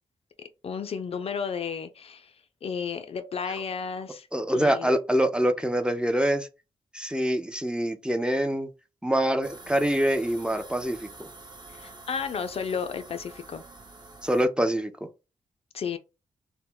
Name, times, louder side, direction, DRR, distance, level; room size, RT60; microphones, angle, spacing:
voice 1, 0.6-2.3 2.6-4.9 11.7-13.6 15.7-16.0, left 6 dB, 55° left, 0.4 m, -33 dB
voice 2, 4.3-6.5 6.9-8.7 9.0-11.3 14.2-14.9, equal, 5° right, 0.5 m, -25 dB
sound 1, 9.4-14.5, right 3 dB, 35° right, 0.8 m, -47 dB
2.1 x 2.0 x 3.7 m
supercardioid pair, 40°, 12 cm